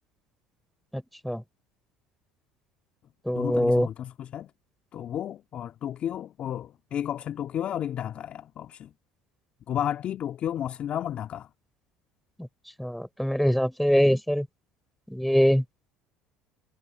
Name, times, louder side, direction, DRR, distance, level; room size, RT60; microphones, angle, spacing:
voice 1, 0.9-1.4 3.2-3.9 12.4-12.5 12.8-14.5 15.1-15.6, equal, ahead, 4.6 m, -23 dB
voice 2, 3.3-4.5 4.9-8.9 9.7-11.5, left 10 dB, 50° left, 2.2 m, -32 dB
hypercardioid pair, 80°, 3 cm